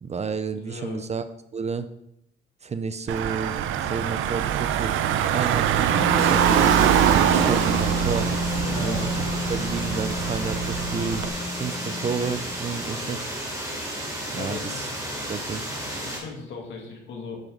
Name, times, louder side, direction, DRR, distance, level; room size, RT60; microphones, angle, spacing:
voice 1, 0.0-1.2 1.5-1.9 2.6-4.9 5.3-8.3 8.8-9.1 9.5-11.2 11.5-13.3 14.3-14.9 15.3-15.6, right 5 dB, 35° right, 11 dB, 0.6 m, -31 dB
voice 2, 0.5-1.1 8.6-9.1 12.9-13.2 14.4-14.9 15.5-15.7 16.0-17.4, left 4 dB, 70° left, 0 dB, 2.4 m, -38 dB
Car / Engine, 3.1-11.3, right 10 dB, 85° right, 0.6 m, -23 dB
Wind instrument woodwind instrument, 5.9-12.8, left 3 dB, 15° left, 0.9 m, -31 dB
sound 1, 6.2-16.2, right 1 dB, 15° right, 3.2 m, -33 dB
9.1 x 6.6 x 3.9 m, 0.77 s
cardioid pair, 90°, 20 cm